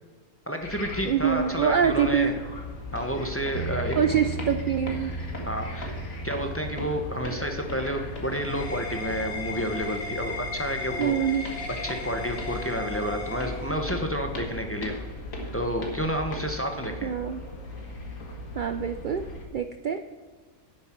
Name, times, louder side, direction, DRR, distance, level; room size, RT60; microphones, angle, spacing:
voice 1, 0.5-2.4 2.9-4.2 5.4-5.9 6.2-11.3 11.8-14.9 15.5-17.1, equal, 10° left, 4 dB, 1.0 m, -30 dB
sound 1, 0.6-19.4, left 2 dB, 65° left, 2.2 m, -37 dB
voice 2, 1.1-2.3 4.0-5.1 11.0-11.4 17.0-17.4 18.5-20.0, right 8 dB, 65° right, 9 dB, 0.5 m, -25 dB
Bass guitar, 3.5-9.8, right 4 dB, 90° right, 1.3 m, -38 dB
sound 2, 7.8-14.2, left 3 dB, 45° left, 1.7 m, -37 dB
11.0 x 9.7 x 4.5 m, 1.4 s
omnidirectional pair, 1.5 m